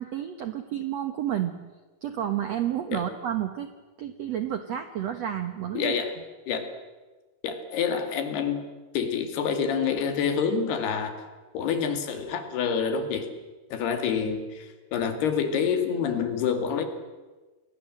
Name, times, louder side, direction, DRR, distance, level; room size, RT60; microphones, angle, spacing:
voice 1, 0.0-1.5 2.0-3.7 4.0-5.9, right 10 dB, 70° right, 8 dB, 1.6 m, -30 dB
voice 2, 5.7-6.1 6.5-6.6 7.4-8.6 8.9-11.1 11.5-13.3 13.7-16.8, left 6 dB, 75° left, 7 dB, 4.2 m, -27 dB
29.0 x 21.5 x 7.7 m, 1.2 s
omnidirectional pair, 4.8 m